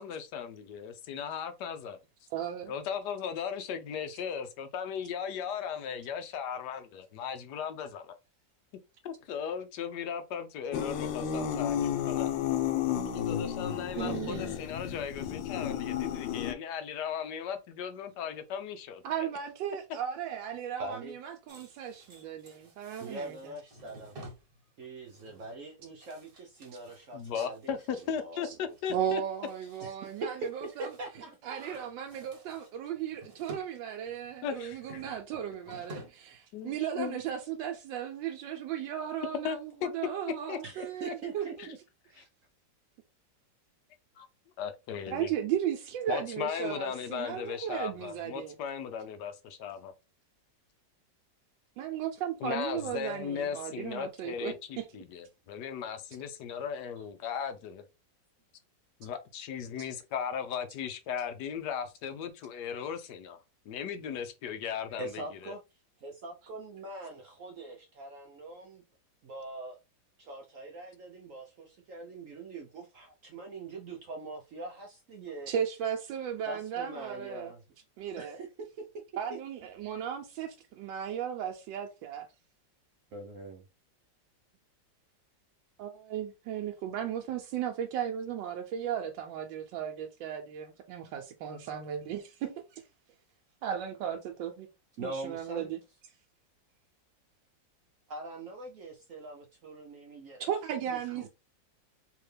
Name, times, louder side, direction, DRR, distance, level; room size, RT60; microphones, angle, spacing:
voice 1, 0.0-2.0 2.7-8.1 9.0-12.3 13.0-19.0 27.1-29.2 34.4-35.0 36.5-37.2 39.4-39.9 40.5-40.6 41.1-41.2 41.6-41.7 44.2-44.3 44.6-45.3 46.1-49.9 52.4-57.8 59.0-63.4 63.7-65.5, left 7 dB, 75° left, 1.2 m, -37 dB
voice 2, 2.3-2.7 13.9-14.5 19.0-23.5 27.3-27.5 28.4-28.5 28.9-30.4 30.8-30.9 31.4-41.7 45.1-48.5 51.8-54.9 75.5-77.5 78.0-78.4 79.2-82.3 85.8-92.8 93.6-94.7 95.0-95.8 100.4-101.3, right 9 dB, 90° right, 1.3 m, -36 dB
sound 1, 10.7-16.5, left 10 dB, 90° left, 1.3 m, -32 dB
voice 3, 20.8-21.2 23.0-24.1 24.8-28.7 29.8-29.9 30.2-30.3 30.8-31.9 40.6-41.8 42.1-42.3 65.0-68.8 69.2-69.8 70.2-75.5 76.5-77.6 78.2-78.5 79.3-79.4 79.8-80.1 83.1-83.6 95.0-95.7 98.1-100.5 100.9-101.3, right 2 dB, 70° right, 0.8 m, -43 dB
sound 2, 21.5-28.1 28.5-28.8 29.1-31.3 31.5-33.7 34.0-36.3 36.6-36.8 37.2-37.3, right 1 dB, 40° right, 1.0 m, -52 dB
3.6 x 2.8 x 3.2 m
omnidirectional pair, 2.0 m